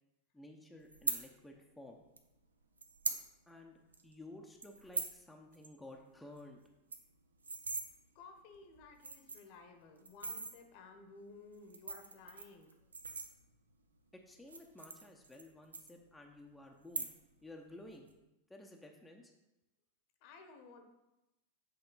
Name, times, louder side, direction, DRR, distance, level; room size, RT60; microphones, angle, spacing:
voice 1, 0.3-2.0 3.5-6.6 14.1-17.1 17.4-18.1 18.5-19.3, left 1 dB, 5° left, 0 dB, 0.7 m, -54 dB
sound 1, 0.9-1.2 2.2-2.3 2.8-3.2 3.6-3.7 3.9-4.2 4.6-5.2 5.5-5.7 6.0-6.1 6.4-6.5 6.7-7.9 8.5-8.6 9.0-9.6 10.1-10.5 11.5-13.7 14.4-15.5 15.7-16.4 16.8-17.4 17.7-18.1, right 4 dB, 75° right, 0.6 m, -40 dB
voice 2, 8.1-12.7 20.2-20.8, left 4 dB, 45° left, 5 dB, 0.9 m, -55 dB
7.8 x 3.7 x 4.0 m, 0.95 s
figure-of-eight pair, 90°, 0 cm